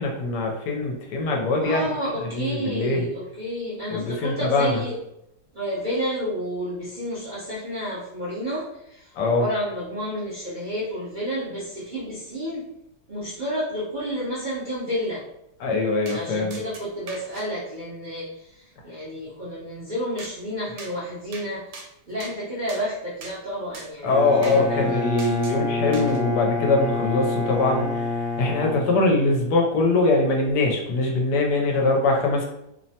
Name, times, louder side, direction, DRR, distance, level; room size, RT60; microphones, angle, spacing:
voice 1, 0.0-1.9 2.3-3.1 3.9-4.8 9.2-9.5 15.6-16.6 24.0-27.9 28.4-32.4, left 2 dB, 80° left, 1 dB, 1.2 m, -22 dB
voice 2, 1.6-5.0 5.5-12.6 13.1-15.2 16.1-21.7 22.1-25.0, equal, 50° right, -10 dB, 0.6 m, -30 dB
sound 1, 16.1-16.2 16.5-17.5 20.2-20.3 20.8-20.9 21.3-21.5 21.7-22.4 22.7-22.8 23.2-23.4 23.7-23.9 24.4-24.6 25.2-25.6 25.9-26.2, right 3 dB, 90° right, 1.2 m, -40 dB
Bowed string instrument, 24.0-29.5, left 3 dB, 65° right, 1.0 m, -28 dB
3.0 x 2.0 x 2.7 m, 0.81 s
omnidirectional pair, 1.8 m